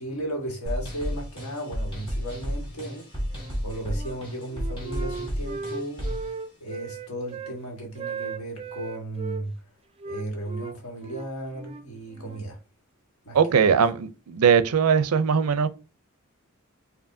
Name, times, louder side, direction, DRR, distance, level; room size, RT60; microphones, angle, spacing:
voice 1, 0.0-3.1 3.6-6.0 6.6-9.5 10.0-12.6 13.2-13.4, right 1 dB, 90° left, 1.6 m, -35 dB
sound 1, 0.7-6.3, equal, 25° left, 1.7 m, -32 dB
Wind instrument woodwind instrument, 3.3-4.2 4.5-7.6 7.9-9.4 10.0-12.5, right 5 dB, 25° right, 0.3 m, -37 dB
voice 2, 13.3-15.7, right 6 dB, 90° right, 0.5 m, -20 dB
4.9 x 2.6 x 2.6 m
head